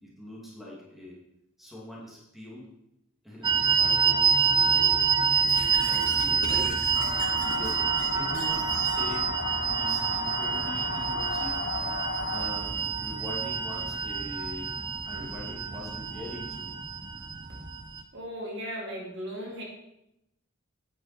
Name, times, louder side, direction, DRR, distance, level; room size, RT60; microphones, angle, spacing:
voice 1, 0.0-1.2 1.6-2.7 3.2-5.1 5.9-6.8 7.4-7.8 8.1-9.3 9.8-11.6 12.3-14.7 15.1-16.7, left 1 dB, ahead, -6 dB, 2.4 m, -42 dB
sound 1, 3.4-18.0, right 6 dB, 20° right, 0.4 m, -27 dB
Squeak / Writing, 5.5-9.2, left 3 dB, 80° left, 2.3 m, -41 dB
sound 2, 6.9-12.5, left 5 dB, 45° left, 0.6 m, -35 dB
voice 2, 18.1-19.6, equal, 55° right, -2 dB, 2.7 m, -36 dB
9.7 x 9.0 x 4.4 m, 0.85 s
head